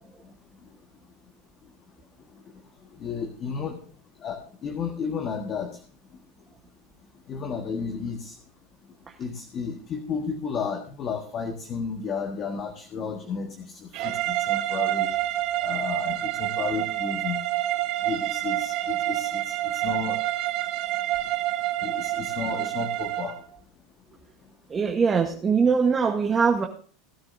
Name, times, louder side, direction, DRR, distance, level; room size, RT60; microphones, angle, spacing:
voice 1, 3.0-3.8 4.2-5.8 7.3-8.3 9.2-15.1 15.6-17.4 18.0-20.2 21.8-23.4, left 6 dB, 35° left, 4 dB, 1.5 m, -32 dB
sound 1, 13.9-23.4, right 14 dB, 60° right, 4.3 m, -28 dB
voice 2, 24.7-26.7, right 5 dB, 20° right, 2 dB, 1.2 m, -22 dB
19.0 x 9.8 x 2.7 m, 0.43 s
supercardioid pair, 125°, 0 cm